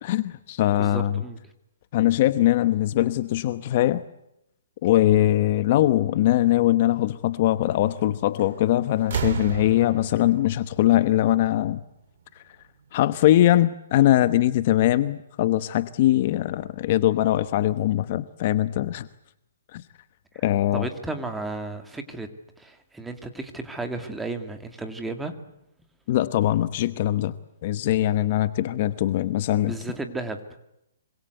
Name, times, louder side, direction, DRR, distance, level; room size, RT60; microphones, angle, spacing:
voice 1, 0.0-1.2 1.9-4.0 4.8-11.8 12.9-19.1 19.7-19.8 20.4-20.9 26.1-27.3 27.6-29.8, left 14 dB, 40° left, 13 dB, 1.0 m, -21 dB
voice 2, 0.8-1.4 20.3-20.4 20.7-22.3 22.6-25.3 29.7-30.6, right 2 dB, 5° right, 7 dB, 2.3 m, -33 dB
sound 1, 8.4-8.7 9.0-11.8 12.9-13.0, right 7 dB, 55° right, 2.7 m, -33 dB
26.0 x 25.5 x 8.1 m, 0.83 s
hypercardioid pair, 160°, 0 cm